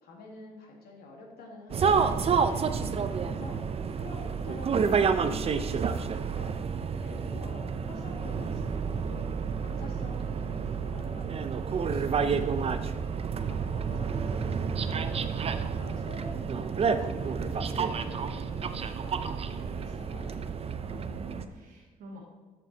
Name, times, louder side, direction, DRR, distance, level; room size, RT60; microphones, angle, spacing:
voice 1, 0.0-2.6 3.2-3.6 4.0-6.5 7.0-9.3 9.6-12.8 13.5-15.3 15.7-20.3, left 3 dB, 90° left, 0 dB, 2.0 m, -48 dB
sound 1, 1.7-21.4, right 6 dB, 40° right, 0.5 m, -29 dB
voice 2, 2.7-3.4 20.7-22.2, right 1 dB, 90° right, -5 dB, 1.7 m, -48 dB
13.0 x 4.6 x 4.0 m, 1.3 s
cardioid pair, 110°, 16 cm